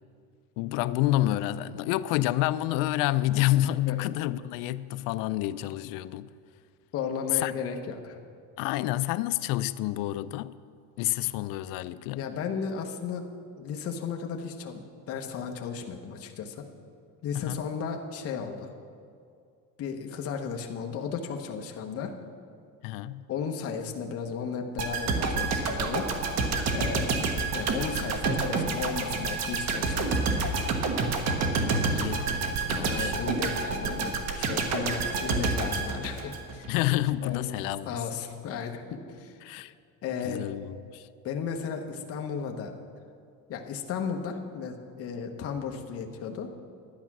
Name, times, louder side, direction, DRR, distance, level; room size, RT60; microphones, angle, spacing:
voice 1, 0.6-6.3 7.3-7.5 8.6-10.6 11.0-12.3 17.3-17.6 22.8-23.3 31.3-33.4 36.7-38.0 39.4-39.7 40.2-41.1, left 15 dB, 70° left, 0.5 m, -29 dB
voice 2, 6.9-8.2 12.1-13.3 13.6-16.7 17.2-18.7 19.8-22.1 23.3-26.1 26.7-27.1 27.5-30.5 32.7-36.7 37.2-37.5 37.8-39.4 40.0-40.4 41.2-42.8 43.5-46.5, left 6 dB, 40° left, 1.1 m, -35 dB
sound 1, 24.8-36.8 37.1-37.3, right 3 dB, 50° right, 1.3 m, -28 dB
11.5 x 9.8 x 6.0 m
cardioid pair, 150°, 35 cm